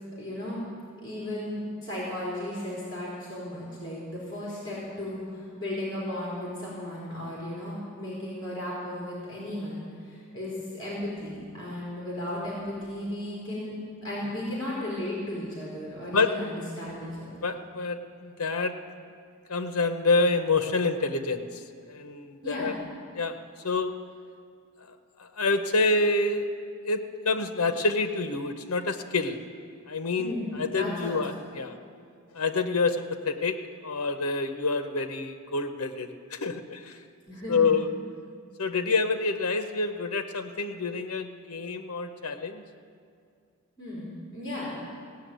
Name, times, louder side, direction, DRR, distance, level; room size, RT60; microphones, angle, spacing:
voice 1, 0.2-0.6 1.0-13.7 14.0-17.3 22.4-22.7 30.2-31.2 37.3-37.6 43.8-44.8, left 1 dB, 20° left, -8 dB, 4.1 m, -35 dB
voice 2, 17.4-18.7 19.5-21.6 21.9-22.7 23.1-23.9 25.2-26.5 26.8-29.4 29.9-31.7 32.3-37.0 37.5-37.9 38.6-42.6, left 3 dB, 80° left, 7 dB, 0.8 m, -27 dB
17.5 x 6.9 x 9.3 m, 2.2 s
head